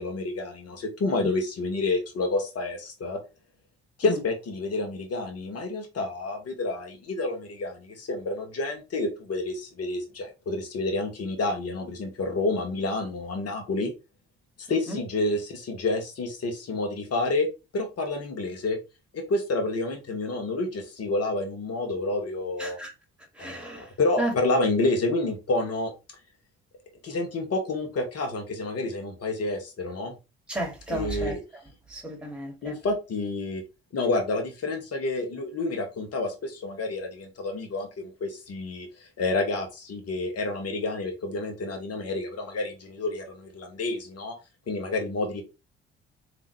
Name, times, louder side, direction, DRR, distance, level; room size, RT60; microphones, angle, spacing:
voice 1, 0.0-3.2 4.0-13.9 14.6-17.5 17.7-18.8 19.1-22.8 23.4-25.9 27.0-30.1 30.9-31.4 32.6-33.6 33.9-44.3 44.7-45.4, left 2 dB, 50° left, 1.7 m, -29 dB
voice 2, 14.7-15.0 22.6-22.9 23.3-23.9 24.2-24.3 30.5-31.3 31.9-32.8, right 1 dB, 5° right, 2.6 m, -33 dB
3.8 x 3.6 x 3.4 m
hypercardioid pair, 45°, 31 cm